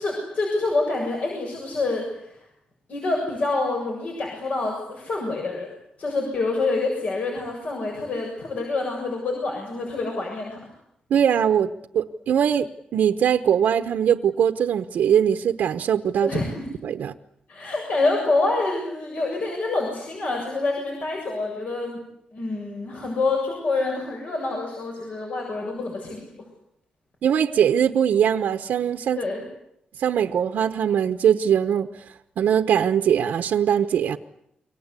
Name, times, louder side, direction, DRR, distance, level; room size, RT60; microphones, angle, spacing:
voice 1, 0.0-2.4 2.9-5.7 6.0-10.6 16.2-16.7 17.5-22.0 22.3-26.3 29.2-29.4, left 3 dB, 55° left, 0 dB, 7.3 m, -27 dB
voice 2, 11.1-16.3 16.8-17.1 27.2-29.2 30.0-32.0 32.4-34.2, right 8 dB, 85° right, 8 dB, 1.0 m, -21 dB
28.5 x 24.0 x 8.3 m, 0.77 s
wide cardioid pair, 125°, 3 cm